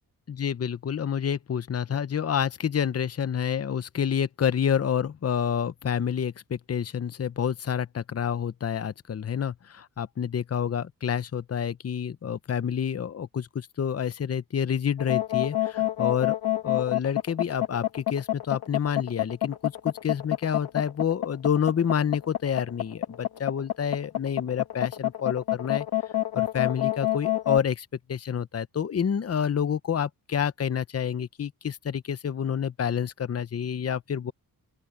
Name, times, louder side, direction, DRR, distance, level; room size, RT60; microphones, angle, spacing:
voice 1, 0.3-16.4 16.6-25.9 26.3-34.3, left 8 dB, 40° left, 0.8 m, -28 dB
sound 1, 15.0-27.6, left 14 dB, 85° left, 2.6 m, -27 dB
open air
wide cardioid pair, 120°, 37 cm